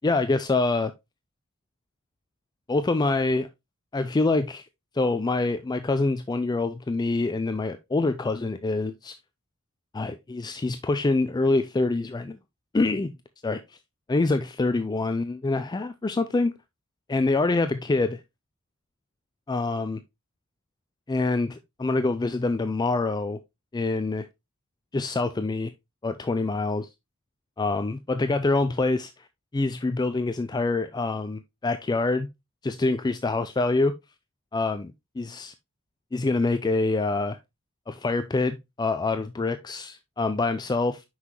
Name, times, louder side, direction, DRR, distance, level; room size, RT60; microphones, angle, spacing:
voice 1, 0.0-0.9 2.7-3.5 3.9-4.6 4.9-9.2 9.9-12.4 12.7-13.1 13.4-13.6 14.1-16.5 17.1-18.2 19.5-20.0 21.1-23.4 23.7-24.3 24.9-25.7 26.0-26.9 27.6-29.1 29.5-32.3 32.6-33.9 34.5-35.5 36.1-37.4 37.9-41.0, left 3 dB, 20° left, 0.4 m, -25 dB
5.9 x 5.7 x 3.0 m
head